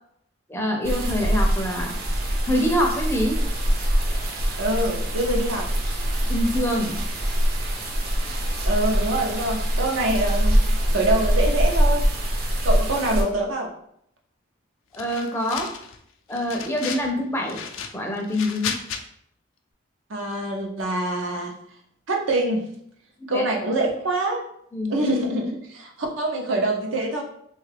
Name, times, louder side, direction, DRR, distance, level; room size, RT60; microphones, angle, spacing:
voice 1, 0.5-1.9 2.5-3.4 6.3-7.0 14.9-15.7 16.3-17.6 17.9-18.7 23.2-23.5 24.7-25.1, left 1 dB, 10° left, 1 dB, 0.4 m, -25 dB
sound 1, 0.8-13.2, equal, 50° right, 0.6 m, -23 dB
voice 2, 4.6-5.7 8.6-12.1 12.6-13.7 20.1-21.5 22.1-22.7 23.3-24.4 24.9-27.2, right 1 dB, 85° right, 1 dB, 0.6 m, -25 dB
sound 2, 14.9-16.0 16.3-17.1 17.4-19.0, left 7 dB, 90° left, 0.4 m, -34 dB
3.2 x 2.4 x 3.2 m, 0.70 s
head